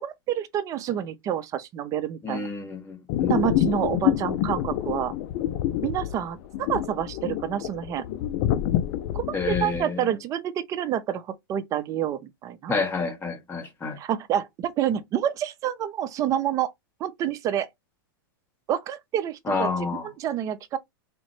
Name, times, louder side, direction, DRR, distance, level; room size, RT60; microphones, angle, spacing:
voice 1, 0.0-2.5 3.3-5.1 5.8-8.0 9.1-12.7 14.0-16.7 17.0-17.7 18.7-20.8, right 10 dB, 30° right, 0.4 m, -28 dB
voice 2, 2.2-3.4 9.3-10.1 12.7-14.0 19.5-20.1, left 4 dB, 15° left, 1.0 m, -29 dB
sound 1, 3.1-9.8, left 12 dB, 45° left, 0.4 m, -27 dB
3.6 x 2.1 x 3.0 m
hypercardioid pair, 120°, 12 cm